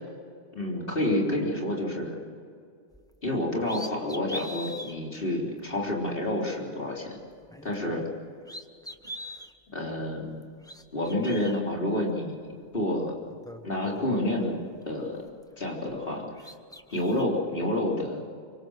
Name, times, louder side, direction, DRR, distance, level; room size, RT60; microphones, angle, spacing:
voice 1, 0.5-2.2 3.2-7.2 7.6-8.0 9.7-10.4 10.9-12.4 12.7-13.1 13.6-14.6 14.9-15.2 15.6-16.2 16.9-18.2, left 1 dB, 50° left, -2 dB, 4.0 m, -29 dB
sound 1, 2.9-3.1 3.6-4.9 5.6-5.7 7.4-8.1 8.4-9.5 10.4-11.6 12.7-12.8 13.2-14.9 15.3-16.1 16.4-17.2, left 1 dB, 5° left, 1.0 m, -43 dB
25.5 x 23.5 x 6.5 m, 2.3 s
omnidirectional pair, 1.2 m